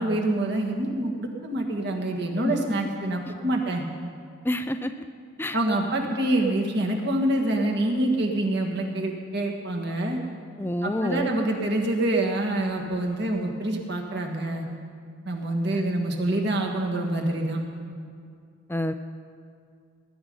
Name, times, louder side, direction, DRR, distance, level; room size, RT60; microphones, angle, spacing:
voice 1, 0.0-3.8 5.5-10.2 10.8-14.7 15.3-17.6, right 1 dB, 55° right, 1 dB, 1.8 m, -26 dB
voice 2, 4.4-4.9 5.4-5.6 10.6-11.3 15.7-15.8 18.7-18.9, left 1 dB, 10° left, 9 dB, 0.4 m, -27 dB
19.0 x 10.5 x 5.5 m, 2.3 s
head